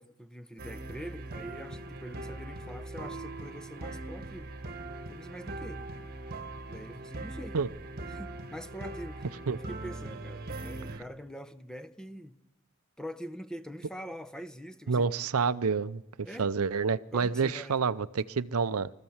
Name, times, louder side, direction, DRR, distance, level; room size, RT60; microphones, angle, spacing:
voice 1, 0.0-4.5 5.1-5.8 6.7-7.6 8.1-12.4 13.0-15.1 16.2-16.5 17.1-17.8, equal, 5° left, 0.8 m, -44 dB
sound 1, 0.6-11.0, right 2 dB, 45° right, 1.3 m, -41 dB
voice 2, 14.9-18.9, right 5 dB, 75° right, 0.6 m, -28 dB
24.5 x 14.5 x 7.2 m
head